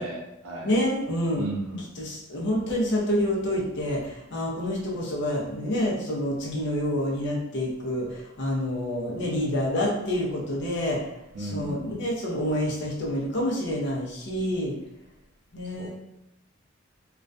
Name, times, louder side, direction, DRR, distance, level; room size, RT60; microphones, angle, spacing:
voice 1, 0.0-0.7 1.3-1.8 11.3-11.8 15.8-15.9, right 1 dB, 85° right, -2 dB, 0.5 m, -34 dB
voice 2, 0.6-1.5 1.8-11.0 11.4-14.7 15.5-15.9, left 1 dB, 65° left, -2 dB, 0.6 m, -28 dB
2.3 x 2.1 x 2.5 m, 0.88 s
head